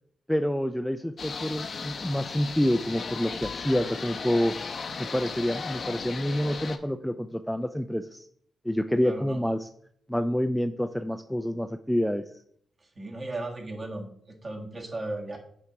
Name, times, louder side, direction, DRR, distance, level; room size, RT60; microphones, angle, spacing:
voice 1, 0.3-4.5 5.0-8.3 8.6-9.7 10.1-12.2, equal, 5° left, 8 dB, 0.3 m, -27 dB
sound 1, 1.2-6.8, left 5 dB, 55° left, 0.6 m, -36 dB
voice 2, 9.0-9.5 13.0-15.4, right 2 dB, 35° right, 1 dB, 1.5 m, -36 dB
8.0 x 2.9 x 4.9 m, 0.64 s
cardioid pair, 70°, 0 cm